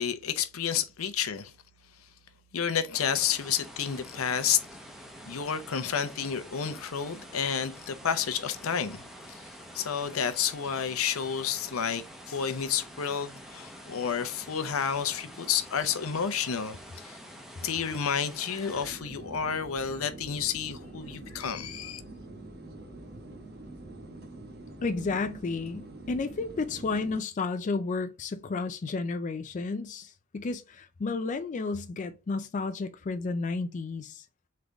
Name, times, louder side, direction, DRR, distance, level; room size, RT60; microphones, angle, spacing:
voice 1, 0.0-1.5 2.5-4.6 5.3-9.4 9.7-17.2 17.6-22.0, left 7 dB, 80° left, 0.6 m, -30 dB
sound 1, 2.9-18.9, equal, ahead, 0.7 m, -47 dB
sound 2, 18.7-27.2, right 2 dB, 50° right, 1.0 m, -45 dB
voice 2, 24.8-34.3, left 3 dB, 35° left, 0.4 m, -32 dB
3.9 x 3.2 x 3.4 m
head